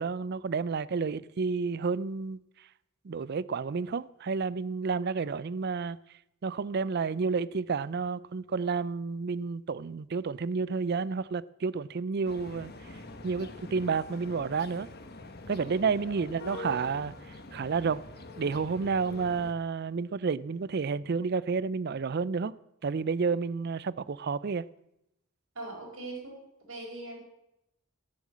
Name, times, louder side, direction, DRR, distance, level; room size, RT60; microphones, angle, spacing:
voice 1, 0.0-2.7 3.0-6.0 6.4-13.0 13.2-14.9 15.5-18.0 18.4-22.5 22.8-24.7, right 5 dB, 50° right, 0.4 m, -30 dB
sound 1, 12.2-19.5, left 2 dB, 50° left, 1.3 m, -45 dB
voice 2, 25.6-26.4 26.7-27.2, right 2 dB, 70° right, 5.1 m, -41 dB
14.0 x 10.5 x 7.5 m
head